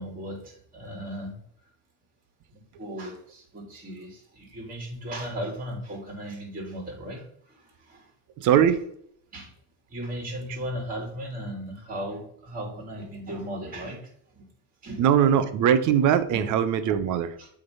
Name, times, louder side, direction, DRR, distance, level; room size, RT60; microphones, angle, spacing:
voice 1, 0.0-1.3 2.5-8.1 9.3-9.5 9.9-14.4 14.8-15.1 16.3-16.5 17.4-17.5, equal, 20° right, -2 dB, 3.3 m, -37 dB
voice 2, 8.4-8.8 15.0-17.4, right 9 dB, 50° right, 11 dB, 1.0 m, -21 dB
7.7 x 3.8 x 5.5 m, 0.66 s
cardioid pair, 125°, 37 cm